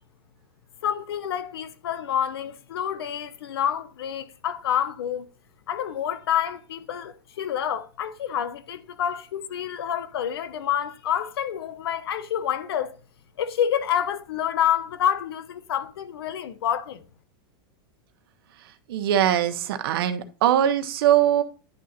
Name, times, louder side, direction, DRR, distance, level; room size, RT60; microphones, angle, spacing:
voice 1, 0.8-5.3 5.7-13.0 13.4-17.0, left 9 dB, 90° left, 0.9 m, -28 dB
voice 2, 18.9-21.4, right 11 dB, 75° right, 0.8 m, -21 dB
9.9 x 3.8 x 4.2 m
supercardioid pair, 140°, 13 cm